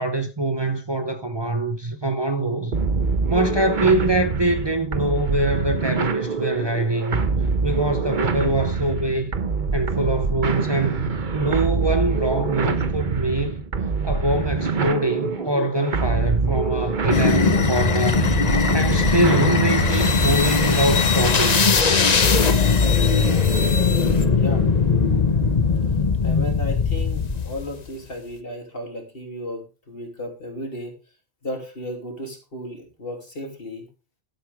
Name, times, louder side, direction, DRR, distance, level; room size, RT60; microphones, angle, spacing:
voice 1, 0.0-2.8 3.3-7.3 7.6-9.3 9.7-13.6 14.0-18.3 18.7-21.7, right 2 dB, 25° right, 0.8 m, -24 dB
sound 1, 2.7-20.3, right 4 dB, 50° right, 1.1 m, -25 dB
sound 2, 17.1-27.7, left 5 dB, 40° left, 1.0 m, -19 dB
voice 2, 24.1-24.7 26.2-31.0 31.4-33.9, left 1 dB, 65° left, 3.2 m, -34 dB
12.0 x 9.6 x 3.5 m
omnidirectional pair, 1.1 m